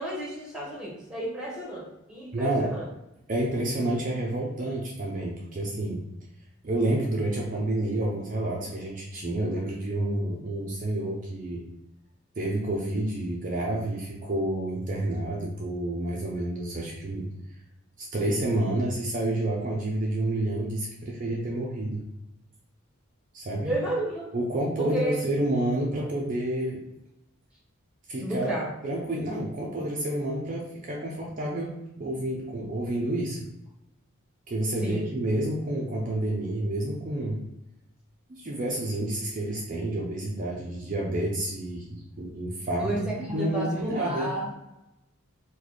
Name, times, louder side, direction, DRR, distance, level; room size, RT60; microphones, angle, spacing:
voice 1, 0.0-2.8 23.6-24.3 24.8-25.2 28.2-28.7 34.8-35.1 42.8-44.5, right 1 dB, 5° right, -3 dB, 1.0 m, -32 dB
voice 2, 2.3-2.7 3.3-6.0 6.6-11.7 12.4-17.3 18.0-22.0 23.3-23.7 24.3-26.8 28.1-28.5 28.8-33.4 34.5-37.4 38.3-44.3, right 1 dB, 35° right, -3 dB, 0.5 m, -29 dB
3.9 x 2.2 x 3.1 m, 0.92 s
head